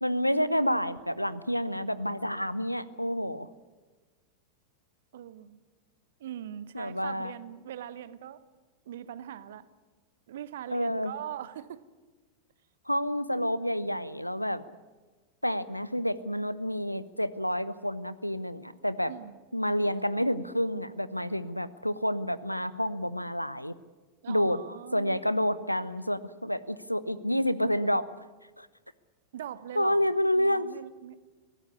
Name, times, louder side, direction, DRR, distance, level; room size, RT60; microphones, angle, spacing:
voice 1, 0.0-3.5 6.7-7.3 10.7-11.1 12.9-14.6 15.4-19.1 19.5-23.7 24.3-24.6 24.9-28.1 28.6-28.7 29.8-30.7, equal, 90° left, 17 dB, 0.8 m, -29 dB
voice 2, 5.1-5.6 6.2-8.4 8.9-9.7 10.3-11.8 19.1-19.4 24.2-25.2 29.3-31.2, right 11 dB, 60° right, 16 dB, 1.1 m, -41 dB
23.0 x 17.5 x 9.8 m, 1.3 s
figure-of-eight pair, 90°, 0 cm